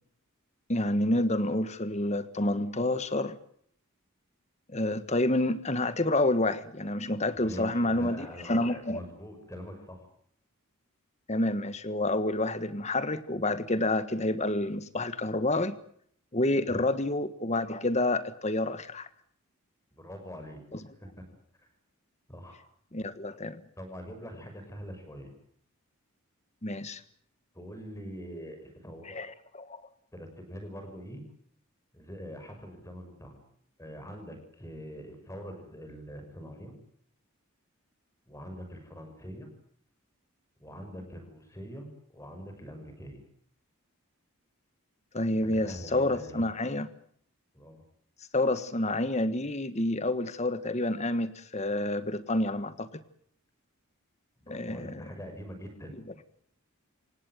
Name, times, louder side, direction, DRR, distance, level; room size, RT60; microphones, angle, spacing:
voice 1, 0.7-3.4 4.7-9.0 11.3-15.7 16.3-19.1 20.7-20.8 22.9-23.6 26.6-27.0 29.1-29.8 45.1-46.9 48.3-53.0 54.5-55.1, left 1 dB, 30° left, 13 dB, 1.5 m, -29 dB
voice 2, 7.3-10.1 16.7-16.8 19.9-20.6 21.0-21.1 22.3-22.7 23.8-25.3 27.5-29.2 30.1-31.2 31.9-33.4 33.8-36.7 38.3-39.5 40.6-43.2 45.4-46.4 47.5-47.8 54.4-56.0, equal, 15° left, 6 dB, 6.1 m, -43 dB
27.5 x 17.5 x 9.2 m, 0.64 s
head